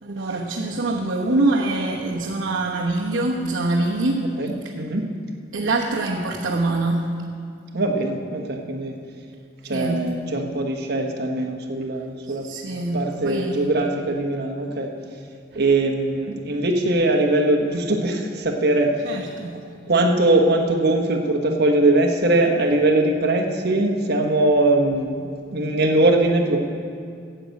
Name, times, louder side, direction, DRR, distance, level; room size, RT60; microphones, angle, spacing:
voice 1, 0.0-4.3 5.5-7.1 9.7-10.0 12.4-13.7 19.0-19.6, right 2 dB, 80° right, -4 dB, 1.1 m, -24 dB
voice 2, 4.4-5.1 7.7-8.9 9.6-12.5 12.9-14.9 15.5-18.9 19.9-26.6, right 2 dB, 60° right, 3 dB, 1.3 m, -21 dB
9.8 x 7.9 x 8.3 m, 2.3 s
head